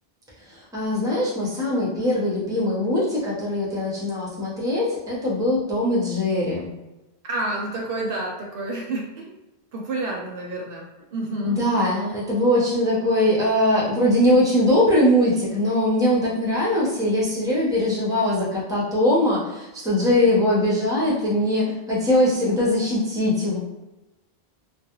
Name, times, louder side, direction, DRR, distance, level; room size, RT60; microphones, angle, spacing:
voice 1, 0.5-6.7 11.4-23.6, left 1 dB, 5° right, -6 dB, 0.6 m, -21 dB
voice 2, 7.2-9.3 9.7-10.8 11.1-11.6, right 2 dB, 65° right, -1 dB, 0.7 m, -29 dB
2.3 x 2.2 x 2.9 m, 1.0 s
omnidirectional pair, 1.0 m